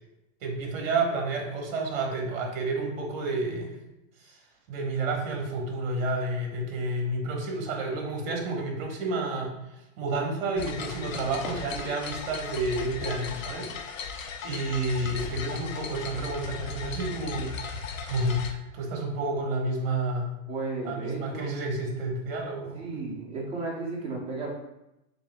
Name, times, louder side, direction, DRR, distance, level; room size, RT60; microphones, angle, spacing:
voice 1, 0.4-3.7 4.2-4.4 4.7-9.5 10.0-20.3 20.8-23.0, right 2 dB, 45° right, 0 dB, 1.3 m, -30 dB
sound 1, 10.6-18.5, left 5 dB, 90° left, 0.6 m, -37 dB
voice 2, 20.5-21.5 22.7-24.5, right 3 dB, 15° right, -3 dB, 0.7 m, -34 dB
6.8 x 2.8 x 2.2 m, 0.91 s
hypercardioid pair, 145°, 39 cm